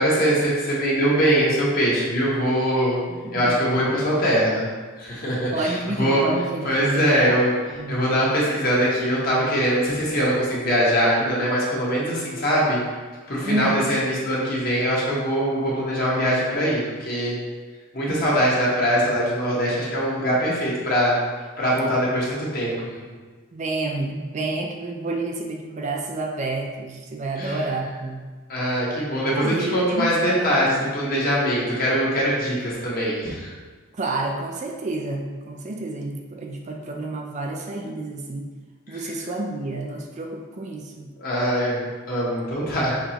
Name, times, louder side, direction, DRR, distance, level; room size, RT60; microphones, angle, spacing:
voice 1, 0.0-3.0 3.3-4.7 5.0-5.7 6.0-6.3 6.6-7.5 7.9-12.8 13.3-17.4 17.9-21.2 21.6-23.1 27.4-27.6 28.5-33.5 38.9-39.0 41.2-43.0, equal, 45° left, -6 dB, 1.2 m, -22 dB
voice 2, 3.1-3.6 5.5-8.0 13.4-14.0 23.5-28.3 29.3-30.7 31.0-31.1 33.9-38.5 38.9-41.1, right 2 dB, 35° right, 2 dB, 0.4 m, -29 dB
5.7 x 2.9 x 2.9 m, 1.4 s
head